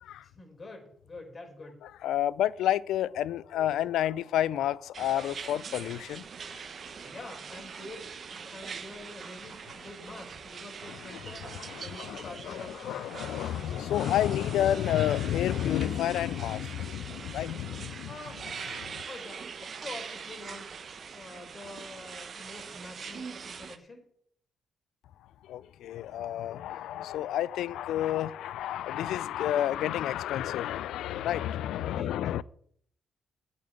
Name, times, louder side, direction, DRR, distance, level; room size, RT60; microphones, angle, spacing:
voice 1, 0.2-1.8 7.0-11.5 11.8-13.0 18.1-18.4 19.0-20.7 21.1-24.1 31.9-32.2, left 2 dB, 35° left, 4.8 m, -46 dB
voice 2, 2.0-6.2 6.5-6.6 11.1-11.2 11.5-18.1 18.8-19.0 25.5-32.4, left 12 dB, 75° left, 0.4 m, -30 dB
sound 1, 4.9-23.8, right 6 dB, 55° right, 0.9 m, -43 dB
8.5 x 7.0 x 8.5 m
hypercardioid pair, 45°, 0 cm